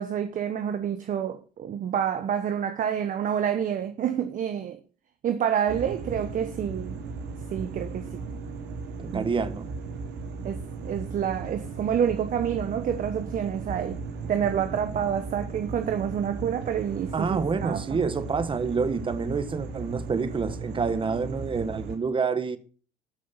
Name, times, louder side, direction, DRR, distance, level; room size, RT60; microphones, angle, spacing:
voice 1, 0.0-4.8 5.2-7.0 7.5-8.2 9.1-9.3 10.4-14.0 14.3-18.0, right 8 dB, 45° right, 1.1 m, -28 dB
sound 1, 5.7-22.0, right 4 dB, 65° right, 2.8 m, -36 dB
voice 2, 9.0-9.6 17.1-22.6, right 5 dB, 25° right, 1.4 m, -28 dB
13.0 x 6.4 x 5.7 m
cardioid pair, 105°, 19 cm